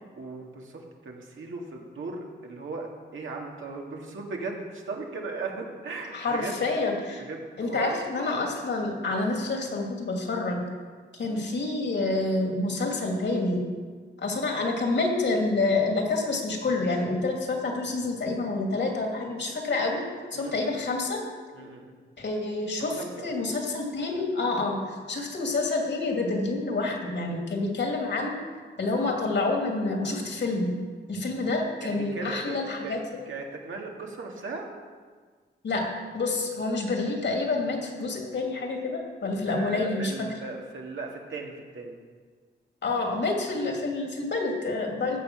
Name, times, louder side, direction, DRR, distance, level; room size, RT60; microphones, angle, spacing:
voice 1, 0.2-6.6 7.2-7.9 11.2-11.4 20.3-20.5 21.5-21.9 22.8-23.3 31.8-33.0 33.3-34.7 39.5-42.0, right 3 dB, 80° right, 0 dB, 1.9 m, -37 dB
voice 2, 6.1-7.3 7.6-10.6 11.1-13.6 14.2-20.0 20.3-21.2 22.2-28.4 28.8-30.7 31.1-33.0 35.6-35.9 36.1-40.3 42.8-45.2, left 3 dB, 65° left, 1 dB, 2.5 m, -28 dB
15.0 x 6.7 x 6.2 m, 1.5 s
wide cardioid pair, 100°, 20 cm